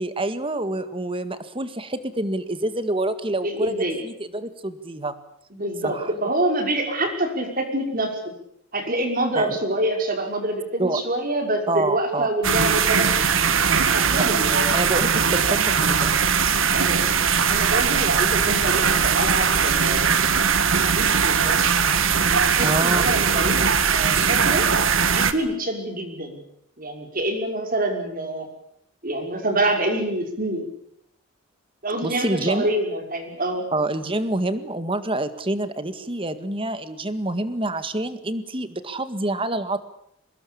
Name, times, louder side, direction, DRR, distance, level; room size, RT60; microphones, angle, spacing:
voice 1, 0.0-3.7 4.0-5.2 5.8-6.1 9.4-9.6 10.8-11.0 11.7-12.3 14.2-14.4 14.7-16.2 22.6-23.0 32.0-32.7 33.7-39.8, right 2 dB, 25° right, 11 dB, 1.8 m, -27 dB
voice 2, 3.4-4.0 5.5-8.2 8.7-13.1 13.9-14.8 16.7-17.0 17.5-20.3 20.8-21.7 22.4-24.7 25.1-26.4 26.8-28.5 29.0-30.7 31.8-33.7, right 1 dB, 40° right, 4 dB, 5.7 m, -26 dB
sound 1, 12.4-25.3, right 6 dB, 70° right, 1.8 m, -20 dB
24.5 x 20.5 x 8.7 m, 0.74 s
head